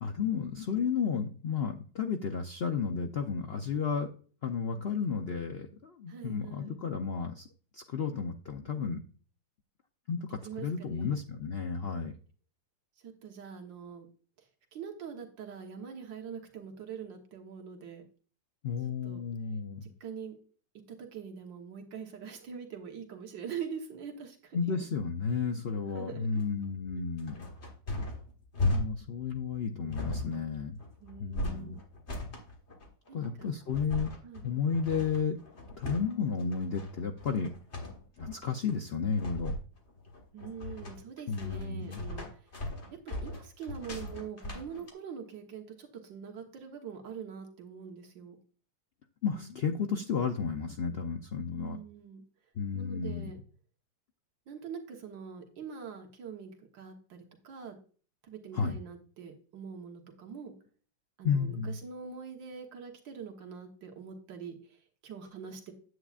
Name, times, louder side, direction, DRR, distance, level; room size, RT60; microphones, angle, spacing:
voice 1, 0.0-4.1 4.4-7.5 7.7-9.0 10.1-12.1 18.6-19.9 24.5-27.4 28.6-30.8 31.2-31.8 33.1-34.1 34.4-35.4 35.8-37.5 38.2-39.5 41.3-42.0 49.2-51.8 52.6-53.3 58.5-58.8 61.2-61.7, left 6 dB, 85° left, 3 dB, 0.5 m, -32 dB
voice 2, 6.1-6.8 10.4-11.2 13.0-14.1 14.7-18.0 19.0-19.2 20.0-20.4 20.9-24.6 25.9-26.4 31.0-31.8 33.1-33.5 34.2-34.5 40.3-42.3 42.9-48.4 51.5-52.2 52.7-53.4 54.5-57.8 58.2-60.5 61.2-65.7, right 6 dB, 80° right, 3 dB, 1.9 m, -44 dB
sound 1, 26.3-44.9, left 2 dB, 40° left, 1.7 m, -37 dB
9.6 x 8.2 x 2.4 m, 0.42 s
omnidirectional pair, 2.0 m